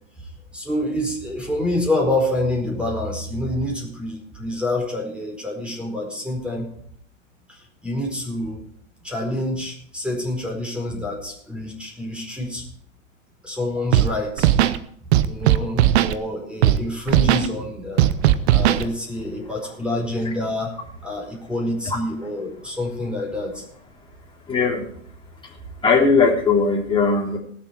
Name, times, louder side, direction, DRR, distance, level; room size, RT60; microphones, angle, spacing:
voice 1, 0.5-6.7 7.5-8.6 9.0-12.7 13.4-14.5 15.2-18.2 18.5-20.7 21.0-23.6, left 1 dB, 5° right, -1 dB, 4.6 m, -27 dB
Scratching (performance technique), 13.9-14.1 14.4-14.8 15.1-16.1 16.6-16.8 17.1-17.5 18.0-18.8, right 13 dB, 55° right, 1.0 m, -16 dB
voice 2, 24.5-24.8 25.8-27.4, left 4 dB, 15° left, -3 dB, 3.5 m, -18 dB
19.0 x 7.8 x 4.7 m, 0.64 s
hypercardioid pair, 110°, 39 cm